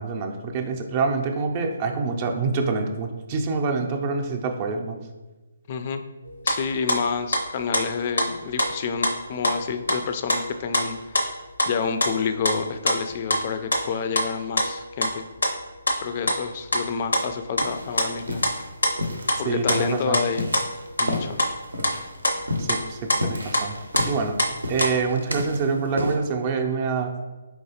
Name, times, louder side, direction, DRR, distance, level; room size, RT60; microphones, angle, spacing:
voice 1, 0.0-5.0 19.5-20.2 22.6-23.7 24.0-24.3 24.7-27.1, right 4 dB, 30° right, 4 dB, 0.5 m, -26 dB
voice 2, 5.7-6.0 6.4-11.3 11.7-15.2 16.0-18.4 19.4-20.5 21.0-21.4, left 6 dB, 40° left, 8 dB, 0.3 m, -29 dB
sound 1, 6.3-6.6 6.9-7.4 7.7-9.1 9.4-11.3 11.5-11.7 12.0-13.4 13.7-14.3 14.6-15.1 15.4-16.0 16.3-17.7 18.0-19.4 19.7-21.1 21.4-21.6 21.8-22.0 22.2-23.7 23.9-25.1, left 1 dB, 80° left, 0.6 m, -25 dB
sound 2, 17.6-26.1, left 1 dB, 90° right, 0.6 m, -33 dB
4.6 x 3.0 x 2.8 m, 1.2 s
figure-of-eight pair, 145°, 0 cm